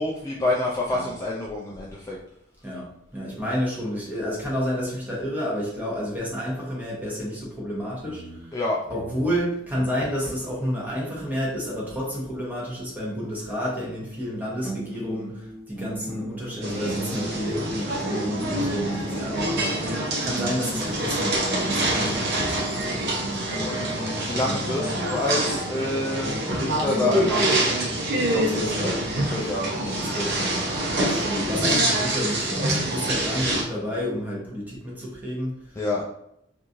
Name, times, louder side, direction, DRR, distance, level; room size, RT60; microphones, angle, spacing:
voice 1, 0.0-2.2 8.5-8.8 18.4-18.8 19.1-19.5 22.9-23.2 23.6-27.6 28.2-28.9 29.2-29.7 31.3-31.5 35.8-36.0, left 2 dB, 15° left, -4 dB, 0.3 m, -28 dB
voice 2, 2.6-8.6 8.9-23.5 23.8-23.9 28.5-29.1 29.8-30.8 31.0-36.0, equal, 10° right, -5 dB, 0.9 m, -30 dB
sound 1, 8.0-10.7 14.2-14.4 14.6-19.8 20.3-22.6 23.2-25.0, right 1 dB, 35° left, 1.0 m, -37 dB
sound 2, 16.6-33.6, right 1 dB, 60° right, 0.8 m, -26 dB
3.0 x 2.5 x 2.5 m, 0.76 s
head